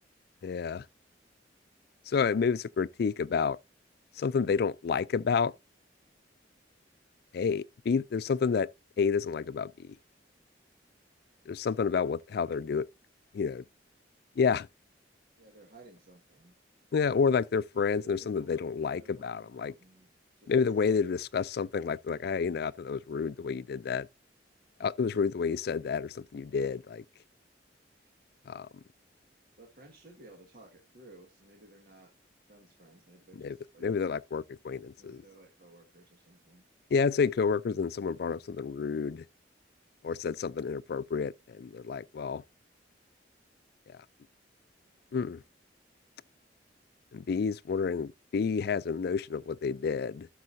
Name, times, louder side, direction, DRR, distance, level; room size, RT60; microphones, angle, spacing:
voice 1, 0.4-0.8 2.1-3.6 4.2-5.5 7.3-8.7 9.0-9.9 11.5-12.9 13.3-13.6 14.4-14.7 16.9-19.7 20.5-24.1 24.8-27.0 28.5-28.7 33.4-35.2 36.9-39.2 40.0-42.4 43.9-44.0 45.1-45.4 47.1-50.3, left 5 dB, 60° left, 0.4 m, -29 dB
voice 2, 15.4-16.6 18.0-18.5 18.9-20.1 20.4-20.5 20.8-21.1 28.0-28.1 29.6-32.1 32.5-33.9 35.0-36.6, right 2 dB, 55° right, 1.7 m, -56 dB
12.0 x 6.4 x 2.7 m
head